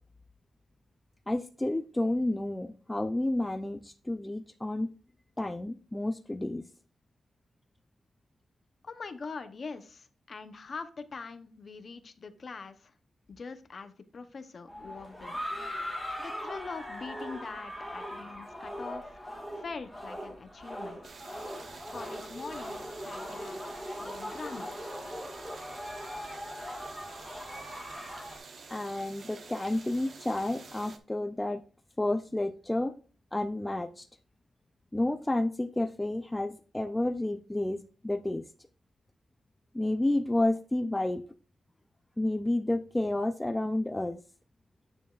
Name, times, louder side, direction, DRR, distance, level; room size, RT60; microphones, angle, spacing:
voice 1, 1.3-4.9 5.4-6.6 28.7-31.6 32.0-32.9 33.3-34.1 34.9-38.4 39.7-41.2 42.2-44.2, left 1 dB, 10° left, 6 dB, 0.3 m, -30 dB
voice 2, 8.8-12.9 13.3-15.4 16.2-21.0 21.9-23.6 24.0-24.7, left 4 dB, 40° left, 10 dB, 0.7 m, -43 dB
sound 1, 14.7-28.4, equal, 5° right, 1.8 m, -40 dB
sound 2, 21.0-31.0, right 4 dB, 45° right, 0.9 m, -49 dB
9.2 x 6.9 x 2.4 m, 0.39 s
wide cardioid pair, 150°, 0 cm